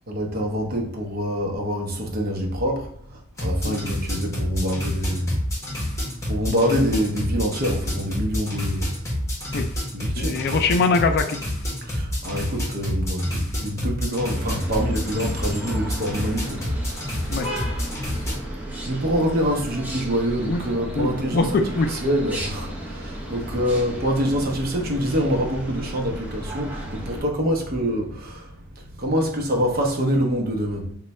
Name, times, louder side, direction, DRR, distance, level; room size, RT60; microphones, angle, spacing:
voice 1, 0.1-5.4 6.3-8.9 9.9-10.5 11.8-16.8 18.9-21.6 21.9-30.9, equal, 50° right, 0.7 m, -25 dB
sound 1, 3.3-18.4, left 1 dB, 15° left, 1.1 m, -28 dB
voice 2, 10.2-11.4 17.3-17.5 20.5-20.6 20.9-21.9, left 3 dB, 55° left, 0.4 m, -22 dB
sound 2, 14.3-27.2, right 1 dB, 10° right, 0.7 m, -34 dB
3.2 x 2.2 x 4.1 m
head